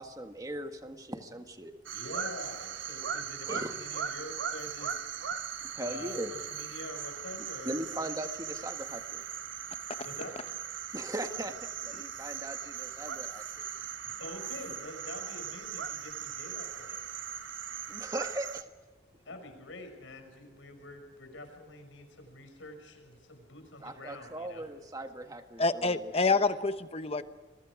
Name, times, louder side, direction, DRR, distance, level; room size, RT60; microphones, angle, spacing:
voice 1, 0.0-1.7 3.5-3.7 5.6-6.3 7.6-9.2 10.9-11.5 11.8-13.7 17.9-18.6 23.8-26.4, right 1 dB, 20° right, 6 dB, 1.7 m, -39 dB
sound 1, 1.8-18.6, right 8 dB, 80° right, 1.1 m, -39 dB
voice 2, 1.9-5.2 5.8-8.1 10.0-10.4 14.0-17.0 19.2-24.7, left 1 dB, 90° left, 6 dB, 5.8 m, -46 dB
voice 3, 25.6-27.2, left 3 dB, 30° left, 10 dB, 1.1 m, -27 dB
29.5 x 23.0 x 5.0 m, 1.3 s
head